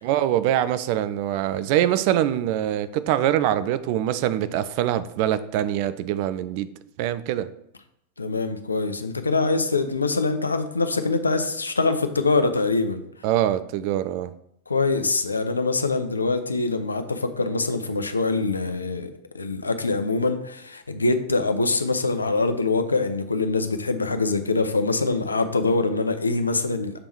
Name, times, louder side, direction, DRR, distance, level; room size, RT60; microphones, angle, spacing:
voice 1, 0.0-6.7 7.0-7.5 13.2-14.3, right 12 dB, 45° right, 13 dB, 0.4 m, -24 dB
voice 2, 8.2-13.0 14.7-27.0, left 3 dB, 80° left, 9 dB, 0.5 m, -24 dB
6.8 x 3.5 x 4.4 m, 0.77 s
figure-of-eight pair, 90°, 0 cm